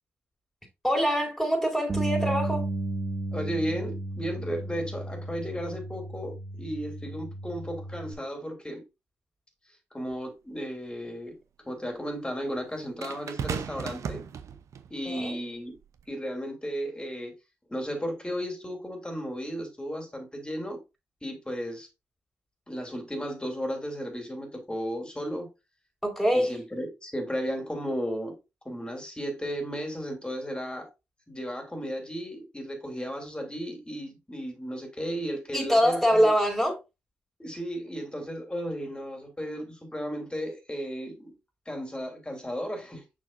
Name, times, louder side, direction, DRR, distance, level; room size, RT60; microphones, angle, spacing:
voice 1, 0.8-2.7 15.0-15.4 26.0-26.6 35.5-36.8, equal, ahead, 4.3 m, -24 dB
Bass guitar, 1.9-8.1, right 2 dB, 45° right, 2.2 m, -33 dB
voice 2, 3.3-8.8 9.9-11.4 11.6-14.2 14.9-15.8 16.1-17.3 17.7-20.8 21.2-21.9 22.7-25.5 26.3-28.4 28.6-30.9 31.3-36.3 37.4-41.3 41.7-43.0, equal, 15° left, 3.1 m, -34 dB
sound 1, 10.1-10.2 13.0-14.9 15.8-16.0, right 7 dB, 60° right, 0.8 m, -35 dB
6.3 x 6.2 x 2.6 m
hypercardioid pair, 40°, 6 cm